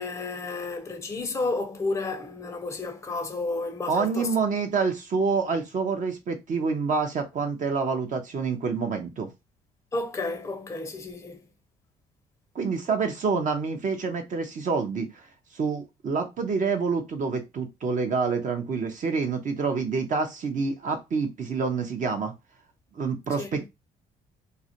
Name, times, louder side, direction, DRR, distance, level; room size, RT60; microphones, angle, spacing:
voice 1, 0.0-4.3 9.9-11.4 23.4-23.6, left 3 dB, 15° left, 0.5 m, -31 dB
voice 2, 3.9-9.3 12.5-15.3 15.5-22.3 22.9-23.7, right 5 dB, 45° right, 0.6 m, -27 dB
2.3 x 2.1 x 2.7 m
supercardioid pair, 65°, 18 cm